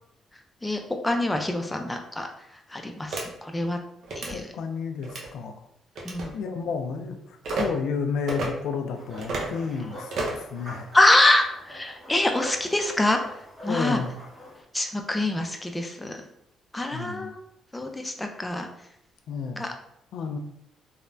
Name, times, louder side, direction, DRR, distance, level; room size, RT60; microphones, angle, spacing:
voice 1, 0.6-2.3 2.7-3.8 4.2-4.5 6.0-6.3 10.9-13.2 13.6-14.0 14.7-16.2 16.7-17.4 17.7-18.7 19.6-19.7, left 1 dB, 10° left, 4 dB, 0.4 m, -25 dB
sound 1, 3.1-3.2 4.0-4.3 5.0-5.3 6.0-6.3 7.4-7.7 8.3-8.5 9.2-9.5 10.1-10.5, right 3 dB, 65° right, 0.6 m, -30 dB
voice 2, 4.3-5.6 6.3-10.9 13.7-14.1 16.9-17.3 19.3-19.6 20.1-20.4, left 5 dB, 80° left, 6 dB, 0.3 m, -31 dB
sound 2, 8.9-14.6, left 1 dB, 25° right, 1.1 m, -43 dB
3.2 x 2.0 x 2.5 m, 0.76 s
cardioid pair, 90°, 0 cm